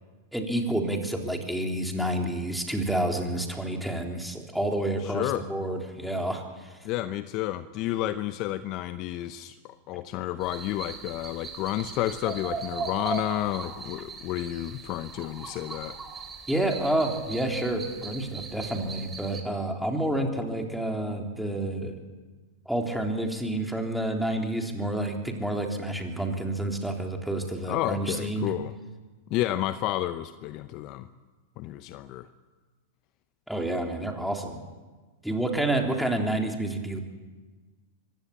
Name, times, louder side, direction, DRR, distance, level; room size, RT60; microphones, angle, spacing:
voice 1, 0.3-6.8 16.5-22.0 22.7-28.5 33.5-34.6 35.2-37.0, right 1 dB, ahead, 2 dB, 3.6 m, -29 dB
voice 2, 5.0-5.5 6.8-16.0 27.6-28.7 29.3-31.1 31.6-32.3, left 14 dB, 45° left, 13 dB, 0.8 m, -31 dB
sound 1, 10.4-19.4, right 5 dB, 20° right, 3.7 m, -39 dB
24.0 x 16.5 x 8.7 m, 1.3 s
hypercardioid pair, 105°, 0 cm